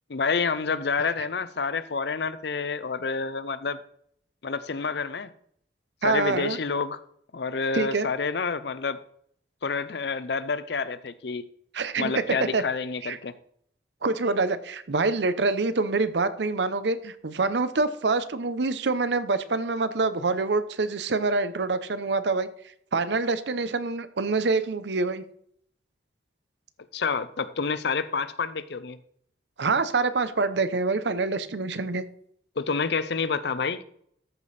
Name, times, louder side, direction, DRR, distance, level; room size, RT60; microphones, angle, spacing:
voice 1, 0.1-3.8 4.4-5.3 6.0-7.0 7.3-9.0 9.6-11.5 12.0-13.3 26.9-29.0 32.6-33.8, left 5 dB, 65° left, 14 dB, 0.6 m, -28 dB
voice 2, 6.0-6.6 7.7-8.1 11.7-12.6 13.0-13.2 14.0-22.5 22.9-25.2 29.6-32.0, right 3 dB, 75° right, 13 dB, 0.7 m, -26 dB
13.5 x 5.1 x 4.2 m, 0.66 s
head